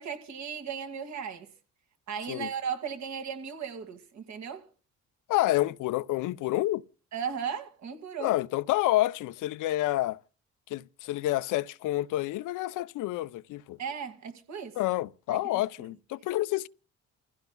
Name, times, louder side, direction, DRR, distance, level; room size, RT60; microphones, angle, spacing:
voice 1, 0.0-1.5 2.1-4.7 7.1-8.3 13.8-14.8 15.3-15.6, right 7 dB, 65° right, 2.2 m, -36 dB
voice 2, 5.3-6.8 8.2-10.2 10.7-13.8 14.8-16.7, left 16 dB, 85° left, 0.6 m, -28 dB
29.0 x 15.5 x 2.3 m
cardioid pair, 90°, 30 cm